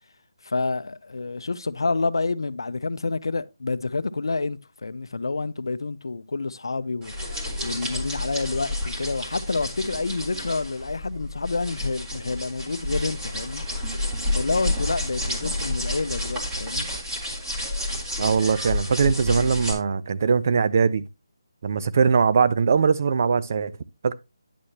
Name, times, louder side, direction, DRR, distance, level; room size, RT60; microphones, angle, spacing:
voice 1, 0.4-7.1 7.6-13.6 14.3-16.9, left 3 dB, 75° left, 0.6 m, -28 dB
sound 1, 7.0-19.7, left 1 dB, 10° right, 1.7 m, -30 dB
voice 2, 18.2-21.0 21.6-23.8 24.0-24.1, right 5 dB, 40° right, 0.5 m, -21 dB
10.0 x 6.3 x 2.8 m
figure-of-eight pair, 165°, 2 cm